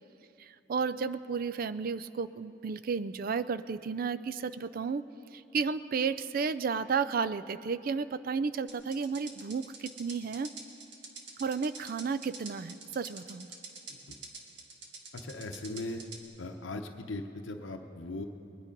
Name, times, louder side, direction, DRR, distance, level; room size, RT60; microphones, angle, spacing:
voice 1, 0.4-5.0 5.3-10.5 11.4-13.5, right 5 dB, 50° right, 15 dB, 0.4 m, -33 dB
sound 1, 8.7-16.2, right 4 dB, 65° right, 1.5 m, -46 dB
voice 2, 15.1-16.0 16.4-18.2, left 2 dB, 75° left, 5 dB, 0.8 m, -39 dB
21.0 x 9.9 x 5.2 m, 2.8 s
head